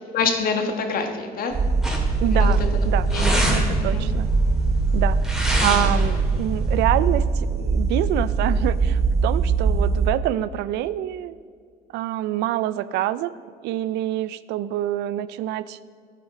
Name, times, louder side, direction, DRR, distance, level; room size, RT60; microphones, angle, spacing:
voice 1, 0.1-1.5 2.3-2.5 3.1-3.4 3.8-4.1, left 5 dB, 60° left, 5 dB, 1.4 m, -25 dB
sound 1, 1.5-10.1, right 4 dB, 40° right, 1.0 m, -22 dB
sound 2, 1.8-6.8, right 1 dB, ahead, 2.8 m, -27 dB
voice 2, 2.2-3.1 3.5-4.3 4.9-11.4 11.9-13.3 13.6-15.8, right 13 dB, 85° right, 16 dB, 0.4 m, -26 dB
13.5 x 8.4 x 4.1 m, 2.1 s
cardioid pair, 110°, 17 cm